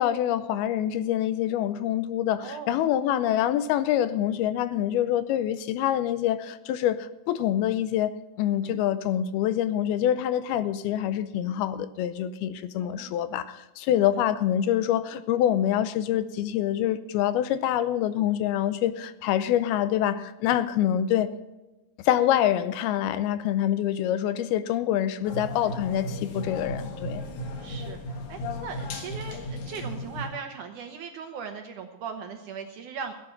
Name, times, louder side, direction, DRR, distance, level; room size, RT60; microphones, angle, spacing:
voice 1, 0.0-8.1 8.4-21.3 22.0-27.2, left 11 dB, 85° left, 13 dB, 2.5 m, -26 dB
voice 2, 2.4-2.8 8.6-8.8 12.8-13.1 13.9-14.0 25.6-25.8 27.6-33.1, right 6 dB, 75° right, 5 dB, 2.0 m, -39 dB
sound 1, 25.2-30.3, left 1 dB, 60° left, 2.7 m, -35 dB
16.5 x 9.0 x 5.8 m, 1.1 s
omnidirectional pair, 4.5 m